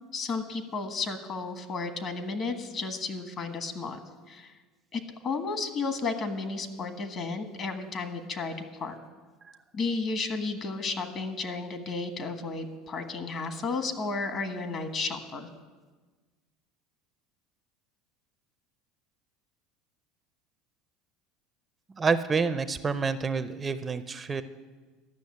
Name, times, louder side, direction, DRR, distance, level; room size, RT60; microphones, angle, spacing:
voice 1, 0.1-4.0 4.3-4.5 4.9-9.0 9.7-15.5, left 4 dB, 45° left, 7 dB, 1.4 m, -33 dB
voice 2, 22.0-24.4, right 5 dB, 25° right, 11 dB, 0.5 m, -28 dB
12.0 x 6.3 x 8.4 m, 1.3 s
supercardioid pair, 110°, 0 cm